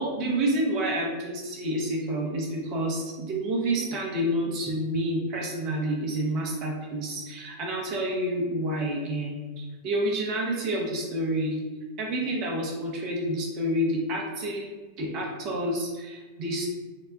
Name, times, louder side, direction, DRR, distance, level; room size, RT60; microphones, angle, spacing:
voice 1, 0.0-11.6 12.0-16.7, right 1 dB, 45° right, -1 dB, 0.9 m, -29 dB
4.0 x 2.3 x 2.3 m, 1.2 s
figure-of-eight pair, 90°, 0 cm